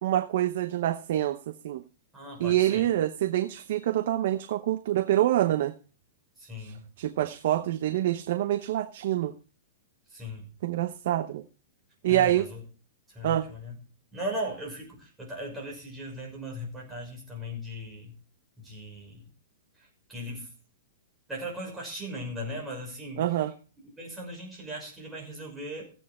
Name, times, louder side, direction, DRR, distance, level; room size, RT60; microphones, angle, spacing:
voice 1, 0.0-1.4 1.6-1.8 2.4-5.7 6.6-9.3 10.6-11.4 12.0-12.5 13.2-13.5 23.2-23.5, right 13 dB, 55° right, 9 dB, 0.8 m, -26 dB
voice 2, 2.1-2.9 6.4-6.8 10.1-10.5 12.1-12.6 13.1-13.8 14.1-18.1 18.6-19.2 20.1-20.5 21.3-23.2 24.0-25.8, equal, 5° right, -3 dB, 6.0 m, -38 dB
15.5 x 9.1 x 4.4 m, 0.38 s
hypercardioid pair, 165°, 0 cm